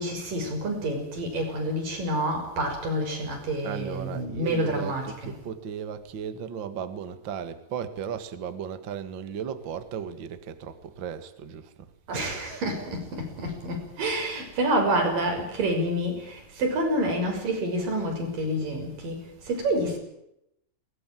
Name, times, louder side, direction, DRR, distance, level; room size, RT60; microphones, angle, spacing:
voice 1, 0.0-5.4 12.1-19.2 19.5-20.0, right 1 dB, 50° right, 7.8 m, -28 dB
voice 2, 3.6-11.7, right 7 dB, 75° right, 1.0 m, -35 dB
22.0 x 19.5 x 9.1 m
omnidirectional pair, 5.0 m